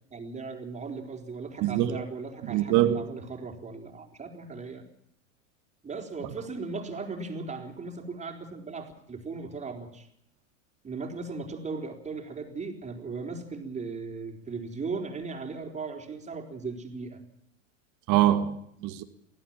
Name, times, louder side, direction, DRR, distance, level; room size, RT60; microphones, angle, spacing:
voice 1, 0.1-4.8 5.8-10.1 10.8-17.2, right 4 dB, 15° right, 4.2 m, -37 dB
voice 2, 1.6-2.0 2.4-3.0 18.1-19.0, right 13 dB, 50° right, 2.0 m, -24 dB
24.5 x 16.0 x 7.4 m
hypercardioid pair, 105°, 39 cm